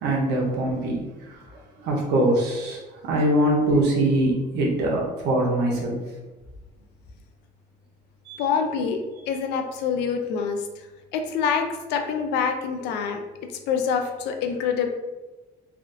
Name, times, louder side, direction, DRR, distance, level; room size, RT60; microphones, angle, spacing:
voice 1, 0.0-1.4 1.8-5.9 8.3-8.4, right 1 dB, 85° right, -2 dB, 0.8 m, -23 dB
voice 2, 8.4-10.9 11.1-13.2 13.7-14.9, left 6 dB, 85° left, 5 dB, 0.4 m, -26 dB
3.4 x 2.4 x 2.6 m, 1.2 s
cardioid pair, 110°, 17 cm